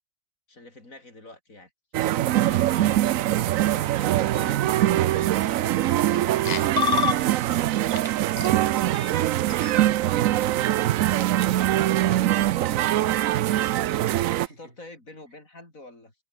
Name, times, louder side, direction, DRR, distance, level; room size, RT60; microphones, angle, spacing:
voice 1, 0.5-1.7 2.4-3.3 3.7-6.8 11.9-13.0 14.3-16.1, left 2 dB, 80° left, 6.3 m, -47 dB
sound 1, 1.9-14.5, right 13 dB, 80° right, 1.0 m, -23 dB
sound 2, 5.2-5.3 5.6-6.2 6.5-7.6 8.0-8.1 8.4-9.7, left 6 dB, 40° left, 0.7 m, -29 dB
voice 2, 13.5-14.8, right 1 dB, 55° right, 7.5 m, -52 dB
omnidirectional pair, 1.4 m